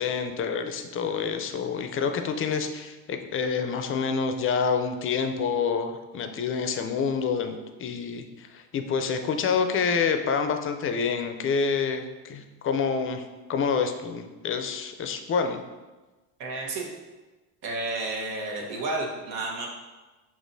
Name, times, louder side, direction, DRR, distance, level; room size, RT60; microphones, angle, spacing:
voice 1, 0.0-13.2 13.5-15.6, left 5 dB, 30° left, 7 dB, 0.4 m, -27 dB
voice 2, 16.4-16.9 17.6-19.7, right 2 dB, 80° right, -2 dB, 1.2 m, -31 dB
6.1 x 2.9 x 2.6 m, 1.2 s
supercardioid pair, 95°, 42 cm